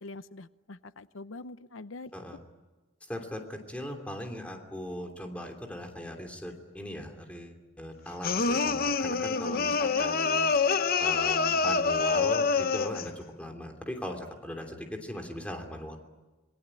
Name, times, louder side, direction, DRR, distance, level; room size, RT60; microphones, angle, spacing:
voice 1, 0.0-2.1 9.2-10.0, left 3 dB, 90° left, 14 dB, 0.8 m, -44 dB
voice 2, 3.1-10.5 11.0-16.0, left 1 dB, 5° left, 3 dB, 3.0 m, -39 dB
sound 1, 8.2-13.1, left 4 dB, 50° left, 0.9 m, -26 dB
27.0 x 21.5 x 9.9 m, 1.2 s
head